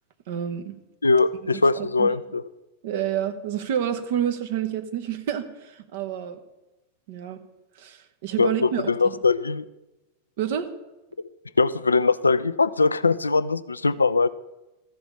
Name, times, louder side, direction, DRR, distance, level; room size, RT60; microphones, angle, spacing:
voice 1, 0.3-0.8 1.8-2.1 2.8-6.4 7.1-7.4 7.8-9.1 10.4-10.7, right 9 dB, 55° right, 8 dB, 1.0 m, -29 dB
voice 2, 1.0-2.4 8.4-9.6 11.6-14.3, left 4 dB, 80° left, 14 dB, 0.4 m, -21 dB
14.0 x 4.9 x 6.8 m, 1.0 s
figure-of-eight pair, 90°, 0 cm